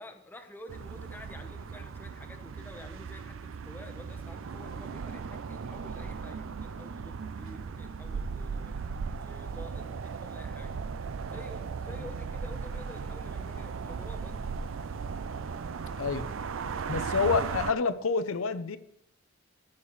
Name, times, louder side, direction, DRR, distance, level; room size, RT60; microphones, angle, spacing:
voice 1, 0.0-8.7 9.2-10.8 11.3-14.5, left 1 dB, 10° left, 4 dB, 0.9 m, -49 dB
sound 1, 0.7-17.7, right 5 dB, 65° right, 0.4 m, -37 dB
voice 2, 16.0-16.3 16.9-18.8, left 4 dB, 85° left, 12 dB, 0.7 m, -28 dB
14.0 x 7.4 x 3.2 m, 0.74 s
head